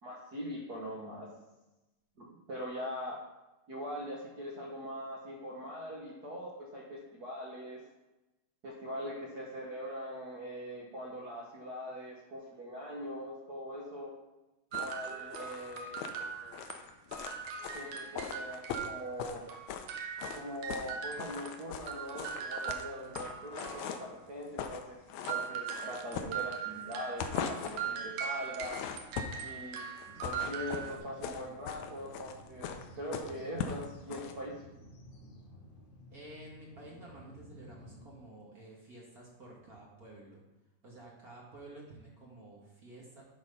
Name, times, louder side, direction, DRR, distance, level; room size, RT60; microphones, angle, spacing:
voice 1, 0.0-1.3 2.2-3.2 3.7-7.8 8.6-14.1 14.8-16.6 17.7-19.4 20.3-28.8 29.4-29.8 30.2-34.5, equal, 55° right, -3 dB, 1.1 m, -42 dB
sound 1, 14.7-19.9 20.2-20.9 21.2-24.1 24.4-24.8 25.1-26.8 27.1-27.9 28.4-29.5 30.0-34.3, left 8 dB, 75° left, 1.9 m, -40 dB
sound 2, 14.7-16.9 17.1-21.5 21.9-24.3 25.2-31.0, right 7 dB, 85° right, 2.4 m, -40 dB
voice 2, 22.8-23.3 36.1-40.4 40.8-43.2, right 1 dB, 40° right, -3 dB, 1.5 m, -51 dB
sound 3, 30.1-38.1, equal, 60° left, 2.5 m, -54 dB
10.5 x 4.2 x 5.4 m, 1.0 s
omnidirectional pair, 3.5 m